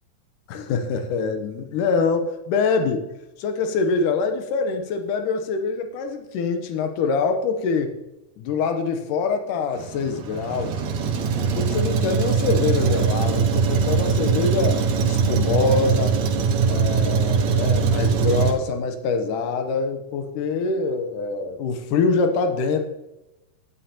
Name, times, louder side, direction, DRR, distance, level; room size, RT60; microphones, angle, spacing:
voice 1, 0.5-3.1 3.4-8.0 8.4-10.8 11.4-16.2 16.7-22.8, left 4 dB, 85° left, 6 dB, 2.5 m, -24 dB
Truck, 9.7-18.5, right 5 dB, 70° right, 2.3 m, -21 dB
11.0 x 10.0 x 2.9 m, 0.96 s
omnidirectional pair, 3.7 m